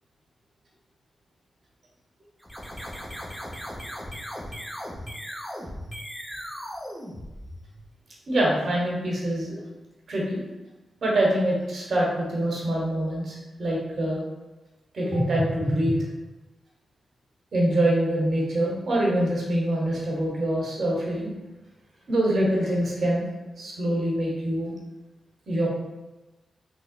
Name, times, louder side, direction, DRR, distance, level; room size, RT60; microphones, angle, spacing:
sound 1, 2.4-7.9, equal, ahead, 0.9 m, -37 dB
voice 1, 8.3-9.6 10.1-10.4 11.0-14.2 14.9-16.0 17.5-21.3 22.1-23.3 23.6-24.7 25.5-25.7, right 1 dB, 60° right, -4 dB, 1.0 m, -25 dB
3.8 x 2.3 x 2.5 m, 1.1 s
supercardioid pair, 40°, 0 cm